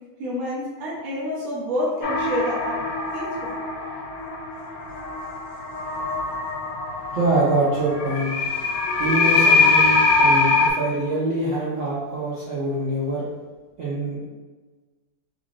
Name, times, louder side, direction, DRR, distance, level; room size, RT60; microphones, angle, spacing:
voice 1, 0.2-2.8 3.1-3.6, equal, 60° right, -6 dB, 1.0 m, -28 dB
sound 1, 2.0-10.7, left 3 dB, 75° left, 0.8 m, -22 dB
voice 2, 7.1-8.3 9.0-13.3 13.8-14.3, right 2 dB, 80° right, -8 dB, 0.6 m, -24 dB
3.8 x 3.2 x 2.5 m, 1.3 s
omnidirectional pair, 2.2 m